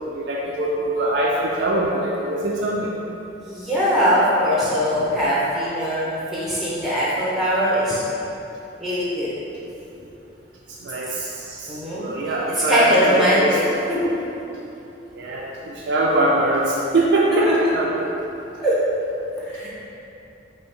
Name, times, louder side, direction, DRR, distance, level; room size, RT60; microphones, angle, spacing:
voice 1, 0.1-2.9 10.8-13.5 15.1-18.1 19.5-19.7, right 1 dB, 65° right, -4 dB, 0.4 m, -22 dB
voice 2, 3.4-8.0 8.8-9.3 11.7-12.1 12.5-13.6 13.9-14.0 17.4-17.5 18.6-18.8 19.5-19.7, equal, ahead, -8 dB, 0.5 m, -21 dB
4.5 x 2.8 x 3.2 m, 3.0 s
head